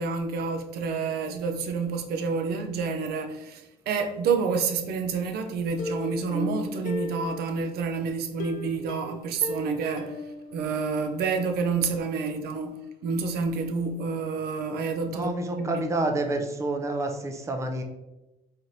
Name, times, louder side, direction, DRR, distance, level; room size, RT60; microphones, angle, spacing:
voice 1, 0.0-15.3 15.6-16.1, right 5 dB, 70° right, 0.5 m, -29 dB
Plucked string instrument, 5.8-7.8 8.4-11.2 11.5-11.6 12.0-12.1, left 2 dB, 50° left, 0.6 m, -36 dB
voice 2, 15.1-17.8, right 2 dB, 15° right, 0.5 m, -29 dB
4.1 x 3.2 x 2.6 m
cardioid pair, 110°, 17 cm